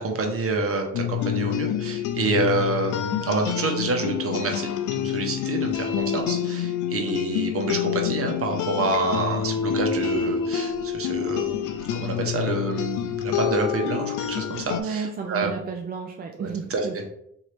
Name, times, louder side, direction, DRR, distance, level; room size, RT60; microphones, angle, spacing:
voice 1, 0.0-15.5 16.4-16.8, right 3 dB, 50° right, 2 dB, 1.0 m, -27 dB
sound 1, 0.9-14.8, left 9 dB, 75° left, 0.5 m, -27 dB
voice 2, 14.8-17.1, right 5 dB, 30° right, 3 dB, 0.4 m, -32 dB
3.1 x 2.8 x 4.4 m, 0.74 s
cardioid pair, 90°, 30 cm